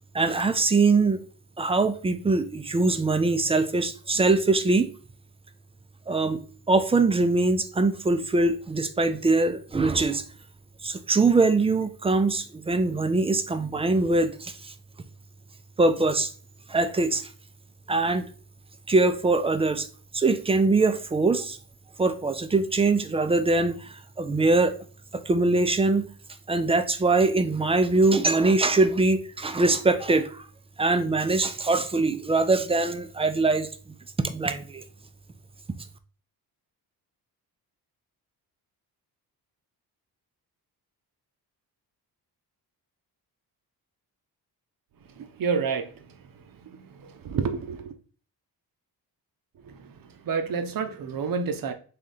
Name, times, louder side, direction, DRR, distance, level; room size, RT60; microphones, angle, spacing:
voice 1, 0.1-1.2 1.6-4.9 6.1-6.4 6.7-10.2 10.8-14.7 15.8-16.3 16.7-17.3 17.9-18.3 18.9-19.9 20.1-21.6 22.0-24.7 25.3-26.0 26.5-30.4 30.8-33.7 34.2-34.8, right 3 dB, 15° right, 0.3 m, -22 dB
voice 2, 45.4-45.9 47.3-47.8 50.3-51.7, right 5 dB, 60° right, 0.7 m, -27 dB
3.6 x 2.8 x 4.0 m
cardioid pair, 120°, 39 cm